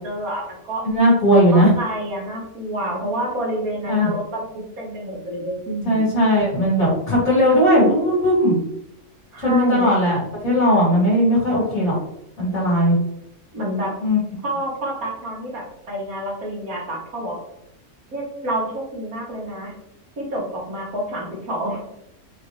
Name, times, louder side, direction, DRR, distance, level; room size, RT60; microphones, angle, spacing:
voice 1, 0.0-0.8 1.5-6.0 9.3-9.9 13.5-13.9 14.4-17.4 18.1-19.7 20.2-21.8, right 1 dB, 85° right, -3 dB, 1.9 m, -28 dB
voice 2, 0.8-1.7 3.9-4.1 5.8-8.6 9.4-11.9 12.4-13.0 14.0-14.2, equal, 70° left, -6 dB, 2.1 m, -17 dB
5.4 x 2.7 x 3.1 m, 0.80 s
omnidirectional pair, 1.5 m